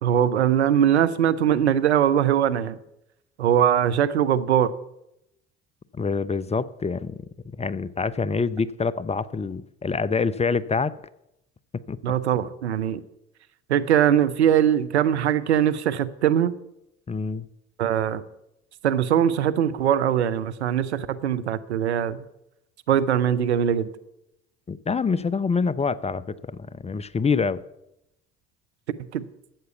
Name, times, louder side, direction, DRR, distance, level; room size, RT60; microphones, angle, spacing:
voice 1, 0.0-2.8 3.4-4.7 12.0-13.0 13.7-16.5 17.8-18.2 18.8-22.2 22.9-23.9 29.1-29.2, right 9 dB, 85° right, 12 dB, 0.7 m, -21 dB
voice 2, 5.9-7.2 7.6-10.9 11.9-12.0 17.1-17.5 24.7-27.6, left 5 dB, 20° left, 18 dB, 0.6 m, -26 dB
13.0 x 8.1 x 6.9 m, 0.85 s
hypercardioid pair, 55°, 33 cm